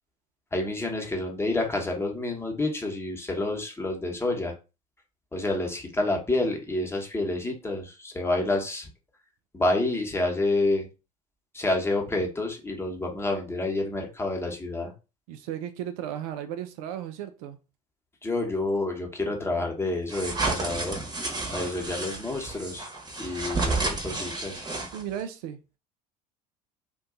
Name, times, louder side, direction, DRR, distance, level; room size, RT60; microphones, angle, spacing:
voice 1, 0.5-4.5 5.3-8.9 9.5-10.9 11.5-14.9 18.2-21.0 21.5-22.9 23.2-24.6, left 2 dB, 10° left, 1.0 m, -28 dB
voice 2, 15.3-17.6 24.9-25.8, right 10 dB, 65° right, 0.4 m, -35 dB
sound 1, 20.1-25.2, right 3 dB, 20° right, 1.0 m, -31 dB
2.6 x 2.3 x 3.7 m
hypercardioid pair, 70°, 20 cm